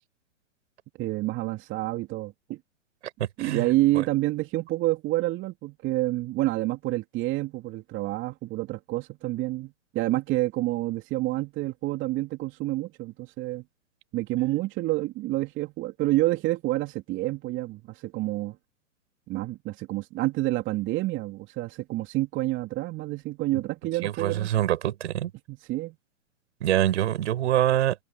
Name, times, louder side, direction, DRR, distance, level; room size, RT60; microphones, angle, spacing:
voice 1, 1.0-2.6 3.4-13.6 14.1-18.6 19.3-24.5 25.5-26.0, right 18 dB, 30° right, 2.8 m, -28 dB
voice 2, 3.2-3.7 3.9-4.0 24.0-25.3 26.6-28.0, right 12 dB, 60° right, 6.0 m, -25 dB
hypercardioid pair, 120°, 39 cm